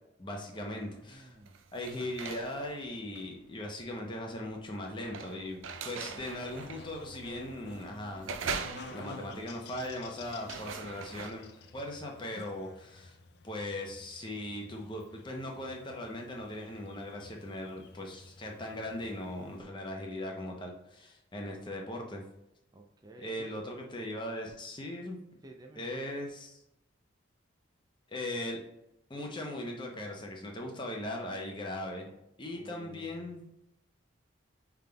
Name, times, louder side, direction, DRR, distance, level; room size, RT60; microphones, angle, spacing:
voice 1, 0.2-1.4 1.7-8.6 8.9-11.5 11.7-13.2 13.4-22.2 23.2-25.2 25.8-26.6 28.1-28.6 29.1-32.1 32.4-33.4, left 1 dB, 25° left, 1 dB, 0.7 m, -39 dB
sound 1, 0.6-1.0 1.4-11.3, right 5 dB, 85° right, 0.4 m, -42 dB
voice 2, 1.1-1.6 22.7-23.5 25.4-26.1 32.5-33.4, right 2 dB, 20° right, 2 dB, 0.4 m, -52 dB
Buzz, 5.6-19.6, left 3 dB, 55° left, 0.4 m, -52 dB
5.6 x 3.4 x 2.3 m, 0.85 s
head